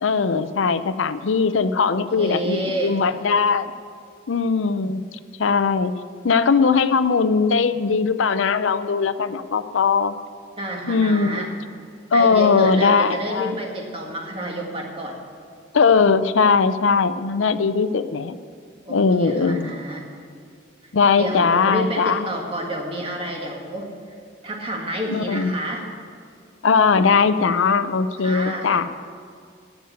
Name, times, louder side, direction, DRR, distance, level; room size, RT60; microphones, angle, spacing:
voice 1, 0.0-3.7 4.3-5.0 5.4-5.9 6.2-10.2 10.9-11.5 12.1-13.5 15.7-18.4 18.9-19.8 20.9-22.3 25.1-25.5 26.6-28.9, left 5 dB, 80° left, 12 dB, 0.5 m, -19 dB
voice 2, 1.7-3.0 10.6-11.5 12.1-15.2 18.9-20.1 21.2-23.9 24.4-25.8 28.2-28.9, right 1 dB, 30° right, 0 dB, 1.8 m, -29 dB
10.0 x 8.2 x 9.5 m, 2.3 s
head